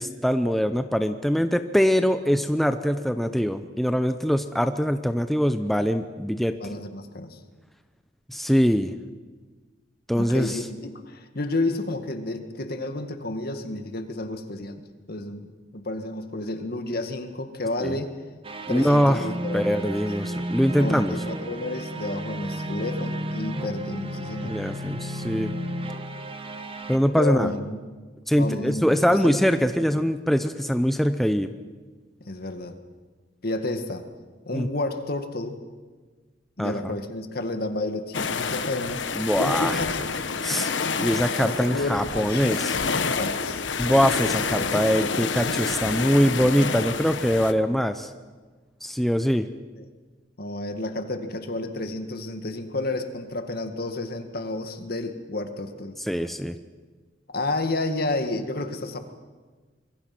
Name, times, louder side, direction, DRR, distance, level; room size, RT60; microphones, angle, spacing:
voice 1, 0.0-6.5 8.3-8.9 10.1-10.6 17.8-18.0 18.7-19.2 19.5-21.1 24.4-25.5 26.9-27.5 28.3-31.5 34.5-34.7 36.6-36.9 39.1-39.8 40.4-40.7 41.0-42.7 43.8-48.1 48.8-49.5 56.1-56.6, equal, ahead, 8 dB, 0.6 m, -23 dB
voice 2, 6.6-7.4 10.2-14.8 15.1-18.1 18.7-20.0 20.7-24.5 27.2-27.8 28.4-29.8 32.3-32.8 33.4-34.1 34.5-35.6 36.6-39.0 39.4-40.1 41.7-43.6 44.5-45.1 49.8-49.9 50.4-56.0 57.3-59.0, left 2 dB, 55° left, 7 dB, 1.9 m, -31 dB
sound 1, 18.4-27.0, right 1 dB, 30° right, 1.4 m, -33 dB
sound 2, 38.1-47.5, left 5 dB, 75° left, 1.2 m, -28 dB
25.5 x 22.0 x 6.0 m, 1.4 s
head